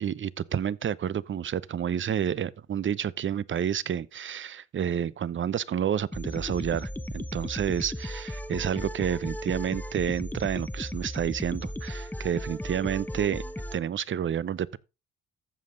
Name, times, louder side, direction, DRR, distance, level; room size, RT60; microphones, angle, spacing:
voice 1, 0.0-13.4 13.7-14.8, right 9 dB, 40° right, 0.6 m, -30 dB
sound 1, 6.1-13.8, left 1 dB, 5° left, 0.8 m, -36 dB
14.5 x 5.4 x 3.8 m
cardioid pair, 90°, 30 cm